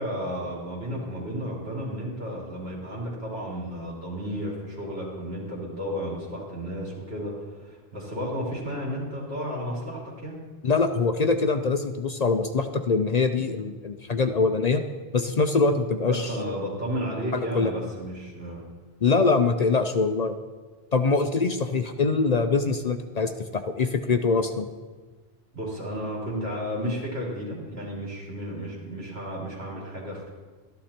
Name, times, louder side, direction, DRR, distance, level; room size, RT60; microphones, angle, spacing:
voice 1, 0.0-10.4 16.1-18.6 25.5-30.3, equal, 80° right, -4 dB, 3.9 m, -33 dB
voice 2, 10.6-14.8 15.1-16.3 17.3-17.7 19.0-20.3 20.9-24.7, left 4 dB, 50° left, 8 dB, 0.6 m, -23 dB
13.5 x 11.5 x 4.4 m, 1.3 s
omnidirectional pair, 1.0 m